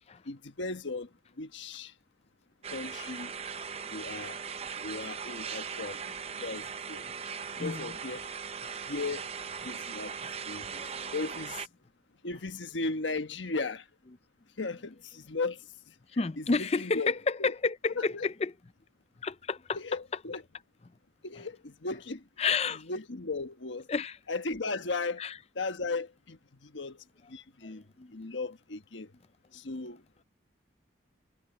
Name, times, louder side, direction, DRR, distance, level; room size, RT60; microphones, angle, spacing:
voice 1, 0.2-1.1 1.4-1.9 2.7-3.3 3.9-4.4 4.8-7.0 7.6-8.2 8.9-9.2 9.6-10.2 10.4-11.7 12.2-13.9 14.6-17.1 17.4-17.5 18.0-18.3 19.8-20.4 21.2-22.2 22.9-23.9 24.3-25.2 25.5-27.8 28.1-29.1 29.5-30.0, left 3 dB, 85° left, 1.2 m, -36 dB
sound 1, 2.6-11.7, right 6 dB, 35° right, 0.7 m, -39 dB
voice 2, 7.6-7.9 9.6-9.7 10.2-10.3 16.1-18.5 19.2-19.8 22.4-22.8 23.9-24.2 25.2-25.4 27.6-28.1, left 4 dB, 35° left, 0.5 m, -31 dB
head